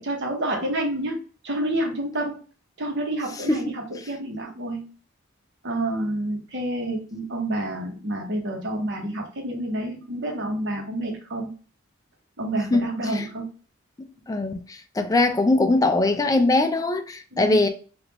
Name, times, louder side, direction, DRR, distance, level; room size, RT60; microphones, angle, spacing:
voice 1, 0.0-2.4 2.8-4.9 5.6-11.5 12.4-13.5 17.3-17.6, right 1 dB, 60° right, 0.9 m, -29 dB
voice 2, 14.3-14.7 15.0-17.7, left 2 dB, 15° left, 0.3 m, -21 dB
3.5 x 2.4 x 2.8 m
head